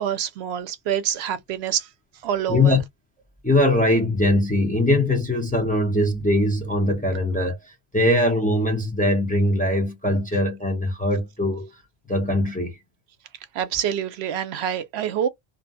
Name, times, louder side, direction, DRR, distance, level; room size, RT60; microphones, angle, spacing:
voice 1, 0.0-1.9 2.2-2.8 13.5-15.3, right 9 dB, 80° right, 0.8 m, -26 dB
voice 2, 2.5-2.8 3.4-11.7 12.1-12.8, left 1 dB, 10° left, 0.6 m, -21 dB
2.6 x 2.1 x 2.6 m
omnidirectional pair, 1.1 m